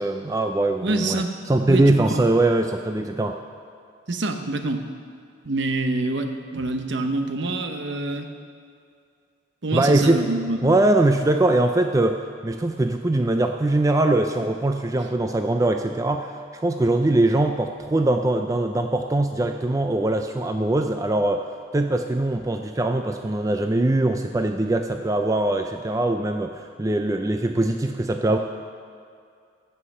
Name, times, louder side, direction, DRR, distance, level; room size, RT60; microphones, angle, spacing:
voice 1, 0.0-1.2 1.5-3.4 9.7-10.2 10.6-12.2 12.4-16.3 16.6-21.4 21.7-28.4, right 2 dB, 15° right, 5 dB, 0.3 m, -22 dB
voice 2, 0.8-1.3 1.6-2.2 4.1-4.8 5.4-8.3 9.6-10.8, right 2 dB, 60° right, 6 dB, 0.8 m, -26 dB
14.5 x 5.6 x 6.7 m, 2.4 s
head